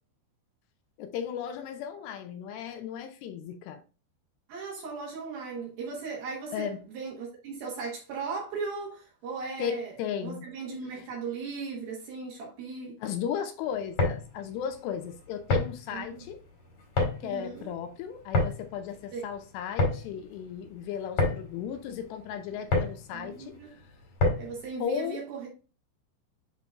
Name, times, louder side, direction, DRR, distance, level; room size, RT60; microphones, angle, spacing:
voice 1, 1.0-3.8 6.5-6.8 9.6-10.5 10.9-11.1 13.0-16.4 17.2-23.8 24.8-25.2, left 8 dB, 80° left, 2.5 m, -35 dB
voice 2, 4.5-6.7 6.9-9.9 10.2-13.0 15.9-16.1 17.3-17.7 19.1-19.3 23.1-23.7 24.4-25.5, right 4 dB, 65° right, 2.7 m, -37 dB
sound 1, 13.8-24.6, left 2 dB, 45° left, 2.2 m, -30 dB
10.0 x 3.8 x 2.4 m
omnidirectional pair, 5.3 m